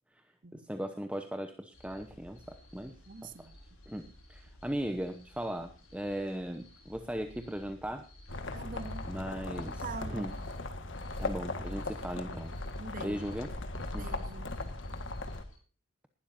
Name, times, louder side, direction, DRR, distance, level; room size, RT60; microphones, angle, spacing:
voice 1, 0.5-3.0 3.2-3.5 3.9-8.1 9.0-10.4 11.2-12.5 13.0-13.5 13.9-14.1, equal, 5° right, 0.9 m, -38 dB
sound 1, 1.7-15.6, left 1 dB, 90° left, 6.7 m, -56 dB
voice 2, 3.1-3.5 8.5-9.1 9.8-10.3 12.8-13.3 14.0-14.6, right 4 dB, 40° right, 0.9 m, -44 dB
sound 2, 8.3-15.4, left 2 dB, 60° left, 1.7 m, -38 dB
19.5 x 12.5 x 2.7 m
head